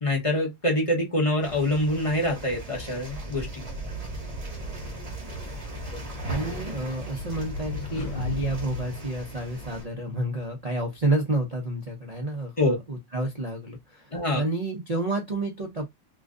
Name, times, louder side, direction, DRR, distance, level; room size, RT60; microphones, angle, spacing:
voice 1, 0.0-3.7 12.6-12.7 14.1-14.4, left 1 dB, 30° left, 0.6 m, -25 dB
sound 1, 1.4-9.8, right 1 dB, 30° right, 0.7 m, -37 dB
voice 2, 6.3-15.9, right 2 dB, 85° right, 0.3 m, -30 dB
sound 2, 6.6-10.0, left 3 dB, 55° left, 1.1 m, -36 dB
3.0 x 2.4 x 3.7 m
omnidirectional pair, 1.9 m